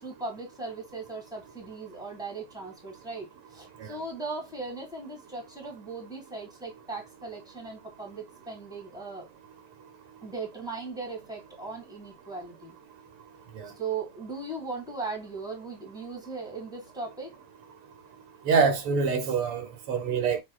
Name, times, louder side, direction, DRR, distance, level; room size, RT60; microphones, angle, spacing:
voice 1, 0.0-9.3 10.2-12.8 13.8-17.3, right 3 dB, ahead, 1.4 m, -38 dB
voice 2, 18.5-20.4, right 5 dB, 85° right, 2.0 m, -25 dB
6.0 x 2.9 x 2.2 m
omnidirectional pair, 2.4 m